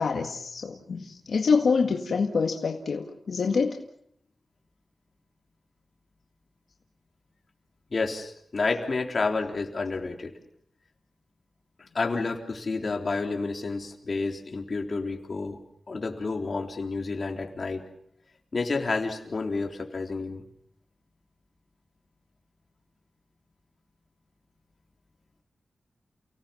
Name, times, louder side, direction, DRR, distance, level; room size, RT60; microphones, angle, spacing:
voice 1, 0.0-3.8, left 5 dB, 75° left, 3 dB, 1.9 m, -26 dB
voice 2, 7.9-10.3 11.9-15.6 15.9-17.8 18.5-20.4, left 3 dB, 45° left, 2 dB, 3.7 m, -30 dB
30.0 x 18.0 x 7.1 m, 0.69 s
wide cardioid pair, 105°, 0 cm